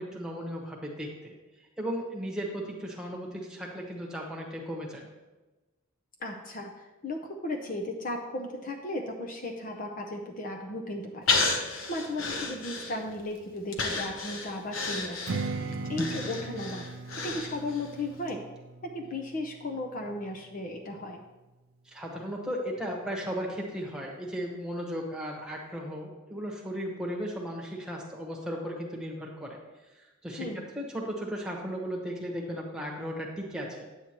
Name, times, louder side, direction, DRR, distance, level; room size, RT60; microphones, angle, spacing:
voice 1, 0.0-1.3 1.8-5.1 21.9-29.6 30.2-30.5 30.7-33.8, equal, 5° right, -2 dB, 1.2 m, -36 dB
voice 2, 6.2-11.4 11.9-16.9 17.2-18.4 18.8-21.2 30.4-30.7, left 1 dB, 40° left, 2 dB, 0.6 m, -36 dB
Breathing, 11.3-13.3 13.7-17.9 18.3-18.4, left 3 dB, 70° left, 1.0 m, -31 dB
Strum, 15.3-20.5, right 3 dB, 85° right, 0.5 m, -39 dB
9.4 x 8.0 x 3.0 m, 1.1 s
head